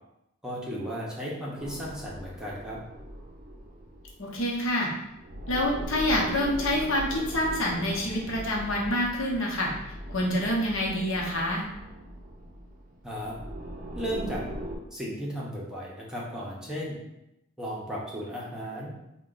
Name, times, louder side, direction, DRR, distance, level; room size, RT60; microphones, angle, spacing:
voice 1, 0.4-2.8 13.0-13.3 13.9-14.4 14.9-17.0 17.6-18.9, equal, 5° right, -6 dB, 0.7 m, -35 dB
sound 1, 1.6-4.7 5.0-14.8, right 1 dB, 40° right, 0.5 m, -40 dB
voice 2, 4.2-4.9 5.5-9.7 10.1-11.7, left 1 dB, 65° left, -3 dB, 0.9 m, -27 dB
3.8 x 2.2 x 3.8 m, 0.87 s
head